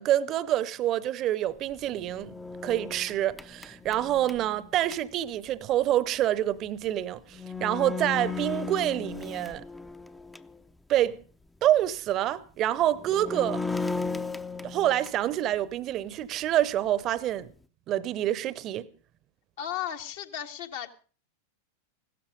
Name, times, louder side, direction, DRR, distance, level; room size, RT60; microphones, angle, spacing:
voice 1, 0.0-2.3 2.6-9.6 10.9-11.2 11.6-13.6 14.6-17.5 17.9-18.9, right 12 dB, 35° right, 0.8 m, -27 dB
sound 1, 1.7-5.0 6.8-6.9 7.3-10.6 11.0-11.1 12.8-15.3, left 4 dB, 5° left, 0.6 m, -36 dB
voice 2, 19.6-20.9, left 10 dB, 55° left, 1.4 m, -35 dB
16.5 x 13.0 x 5.1 m
figure-of-eight pair, 90°, 0 cm